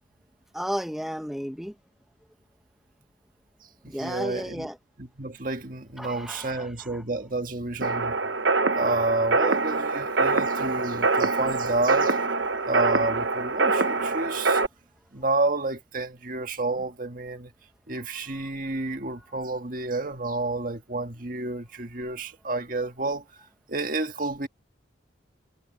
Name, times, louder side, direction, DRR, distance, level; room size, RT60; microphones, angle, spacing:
voice 1, 0.5-1.7 3.9-4.8 6.0-7.0, equal, ahead, 1.1 m, -33 dB
voice 2, 4.0-4.7 5.0-8.1 8.8-12.2 12.7-14.6 15.1-17.5 17.9-23.2 23.7-24.5, right 2 dB, 45° right, 1.7 m, -30 dB
sound 1, 7.8-14.7, right 3 dB, 75° right, 1.2 m, -24 dB
head